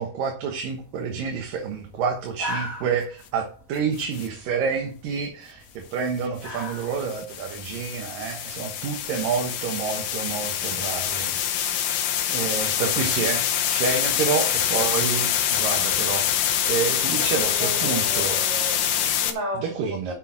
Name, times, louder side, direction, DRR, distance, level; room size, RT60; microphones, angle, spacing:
voice 1, 0.0-11.8 12.3-16.3 16.7-18.4 19.6-20.1, right 6 dB, 70° right, 2 dB, 2.8 m, -28 dB
sound 1, 0.6-11.5, left 1 dB, 20° left, 3.4 m, -42 dB
sound 2, 4.0-4.3 6.4-19.3, left 9 dB, 70° left, 2.7 m, -25 dB
voice 2, 16.8-20.1, equal, 45° right, -1 dB, 4.9 m, -35 dB
8.3 x 6.0 x 7.4 m, 0.42 s
omnidirectional pair, 4.4 m